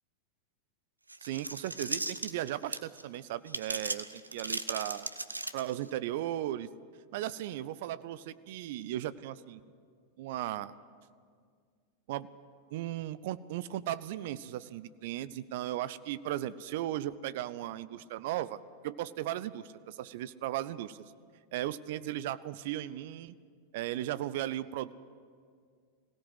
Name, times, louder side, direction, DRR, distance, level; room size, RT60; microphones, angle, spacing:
sound 1, 1.1-3.0 3.5-5.9, right 2 dB, 85° right, 0.8 m, -36 dB
voice 1, 1.2-5.1 5.5-6.7 7.1-9.6 10.2-10.7 12.1-12.3 12.7-21.0 21.5-23.4 23.7-24.9, right 13 dB, 50° right, 17 dB, 0.6 m, -36 dB
22.5 x 17.0 x 7.9 m, 2.1 s
figure-of-eight pair, 90°, 0 cm